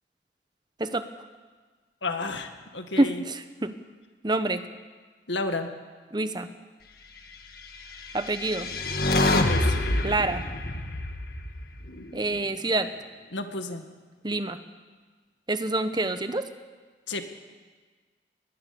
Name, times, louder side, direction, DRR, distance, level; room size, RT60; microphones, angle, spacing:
voice 1, 2.0-3.2 5.3-5.7 9.2-9.8 13.3-13.9 17.1-17.3, left 2 dB, 85° left, 6 dB, 2.0 m, -31 dB
voice 2, 3.0-3.7 4.2-4.6 6.1-6.5 8.1-8.7 10.0-10.4 12.1-12.9 14.2-14.6 15.5-16.5, right 2 dB, 25° right, 10 dB, 1.0 m, -26 dB
sound 1, 8.0-12.3, left 2 dB, 55° left, 1.8 m, -27 dB
21.5 x 21.0 x 7.0 m, 1.4 s
head